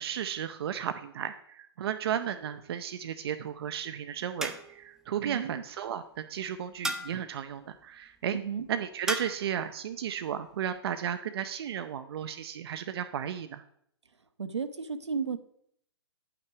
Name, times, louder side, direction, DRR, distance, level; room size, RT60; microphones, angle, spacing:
voice 1, 0.0-8.4 8.7-13.6, right 9 dB, 60° right, 9 dB, 0.6 m, -34 dB
sound 1, 2.2-2.8 4.4-5.0 6.8-7.4 9.1-9.5, right 1 dB, 5° right, 0.5 m, -36 dB
voice 2, 5.2-5.6 8.3-8.7 14.4-15.4, right 6 dB, 85° right, 9 dB, 0.9 m, -33 dB
9.6 x 5.9 x 4.7 m, 0.69 s
hypercardioid pair, 125°, 14 cm